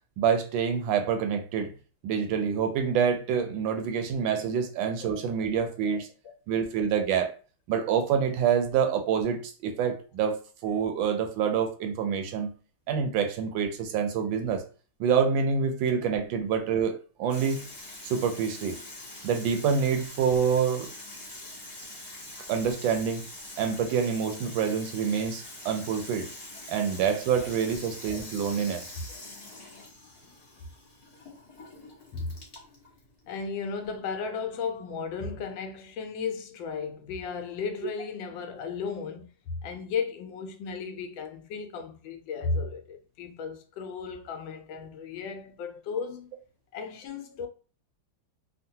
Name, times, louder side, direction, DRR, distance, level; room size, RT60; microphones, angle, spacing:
voice 1, 0.2-1.7 2.0-6.1 6.5-7.3 7.7-12.5 12.9-14.6 15.0-17.6 18.0-18.8 19.2-20.9 22.5-23.2 23.6-26.3 26.7-28.9, right 7 dB, 85° right, 1.3 m, -27 dB
Water tap faucet / Sink (filling or washing), 17.3-34.8, left 2 dB, 25° left, 0.5 m, -45 dB
voice 2, 33.3-39.3 39.6-46.3 46.7-47.5, left 5 dB, 85° left, 1.3 m, -35 dB
3.6 x 2.1 x 2.7 m
omnidirectional pair, 2.0 m